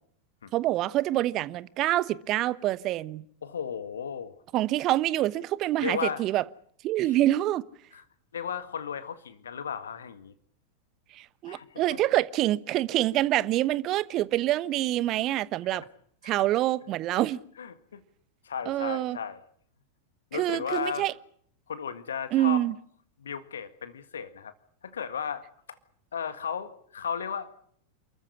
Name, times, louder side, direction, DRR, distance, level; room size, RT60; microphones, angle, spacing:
voice 1, 0.5-3.2 4.5-6.4 6.8-7.6 11.1-15.8 16.2-17.4 18.7-19.2 20.3-21.1 22.3-22.7, right 14 dB, 35° right, 1.1 m, -26 dB
voice 2, 3.4-4.4 5.8-6.2 7.9-8.0 8.3-10.3 11.5-12.0 15.7-15.9 16.2-16.5 17.6-18.0 18.4-19.4 20.3-21.1 21.7-22.6 23.2-24.5 24.8-25.8 26.1-27.7, left 7 dB, 65° left, 1.8 m, -35 dB
28.5 x 14.5 x 10.0 m
figure-of-eight pair, 90°, 0 cm